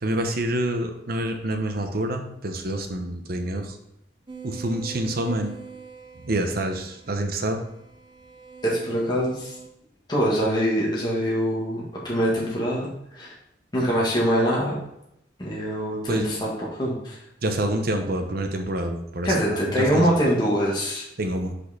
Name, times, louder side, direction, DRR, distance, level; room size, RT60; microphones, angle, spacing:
voice 1, 0.0-3.8 4.4-5.6 6.2-7.6 16.1-16.3 17.4-20.2 21.2-21.5, right 1 dB, 55° right, 5 dB, 0.9 m, -27 dB
sound 1, 4.3-9.7, right 6 dB, 25° right, 0.6 m, -43 dB
voice 2, 8.6-9.5 10.1-12.9 13.1-13.3 13.7-14.8 15.4-17.2 19.2-21.0, equal, 25° left, -5 dB, 1.7 m, -24 dB
6.4 x 5.5 x 4.1 m, 0.81 s
head